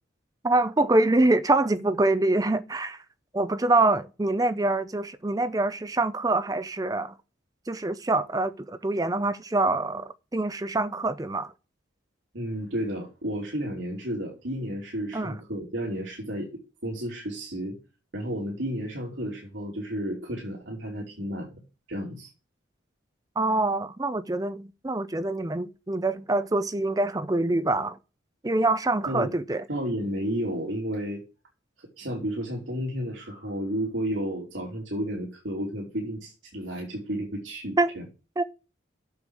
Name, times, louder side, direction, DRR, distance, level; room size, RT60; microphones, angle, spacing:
voice 1, 0.4-3.0 3.3-7.1 7.7-11.5 15.1-15.3 23.4-28.0 28.4-29.6 37.8-37.9 38.4-38.5, right 2 dB, 20° right, 0.5 m, -25 dB
voice 2, 12.3-16.5 16.8-17.8 18.1-21.5 21.9-22.3 29.1-29.3 29.7-31.2 31.8-38.0, equal, 75° right, 3.1 m, -32 dB
8.3 x 7.1 x 6.1 m
head